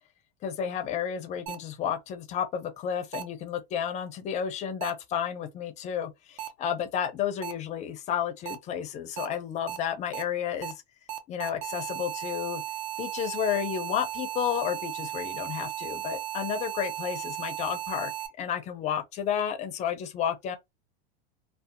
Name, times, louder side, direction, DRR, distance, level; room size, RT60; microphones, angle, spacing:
voice 1, 0.4-10.8 11.3-12.6 13.0-18.1 18.4-20.6, left 8 dB, 25° left, 0.4 m, -31 dB
sound 1, 1.5-1.6 3.1-3.2 4.8-4.9 6.4-6.5 7.4-7.5 8.5-8.6 9.2-9.3 9.7-9.8 10.1-10.2 10.6-10.7 11.1-18.3, right 13 dB, 55° right, 0.6 m, -35 dB
2.6 x 2.0 x 2.5 m
supercardioid pair, 140°, 30 cm